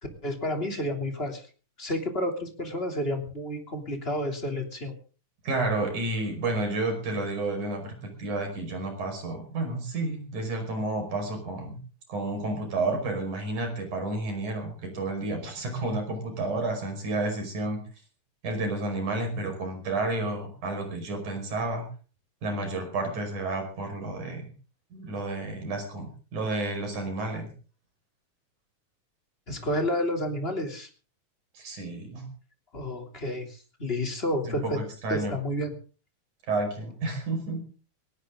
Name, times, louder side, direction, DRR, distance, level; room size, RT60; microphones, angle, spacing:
voice 1, 0.2-1.4 1.8-4.9 29.5-30.9 32.7-34.8 35.1-35.7, left 1 dB, 20° left, 3 dB, 3.1 m, -30 dB
voice 2, 5.4-11.8 12.1-17.8 18.4-21.9 22.4-24.5 24.9-27.5 31.5-32.3 34.4-35.3 36.5-37.6, right 2 dB, 65° right, 4 dB, 6.8 m, -31 dB
19.5 x 18.0 x 3.9 m, 0.39 s
omnidirectional pair, 3.8 m